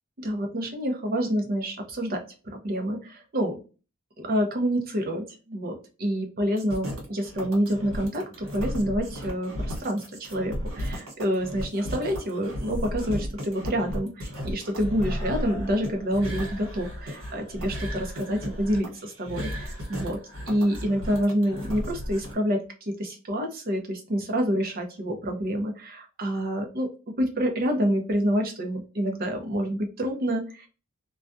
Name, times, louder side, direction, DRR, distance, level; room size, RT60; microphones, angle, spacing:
voice 1, 0.2-2.2 2.4-3.6 4.2-20.2 20.5-30.7, equal, 45° right, 3 dB, 0.7 m, -28 dB
sound 1, 6.6-22.3, equal, 90° right, 1.2 m, -34 dB
2.3 x 2.2 x 2.5 m, 0.34 s
head